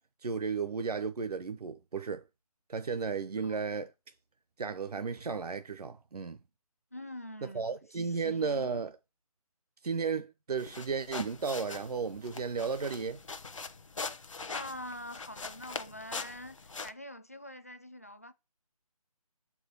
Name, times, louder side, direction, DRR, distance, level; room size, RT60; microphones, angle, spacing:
voice 1, 0.2-2.2 2.7-3.9 4.6-6.4 7.4-8.9 9.8-13.2, right 5 dB, 85° right, 0.8 m, -34 dB
voice 2, 6.9-8.8 14.5-16.6 16.8-18.3, left 1 dB, 25° left, 0.4 m, -45 dB
sound 1, 10.6-16.9, left 4 dB, 55° left, 0.8 m, -42 dB
6.4 x 4.8 x 6.7 m
hypercardioid pair, 175°, 19 cm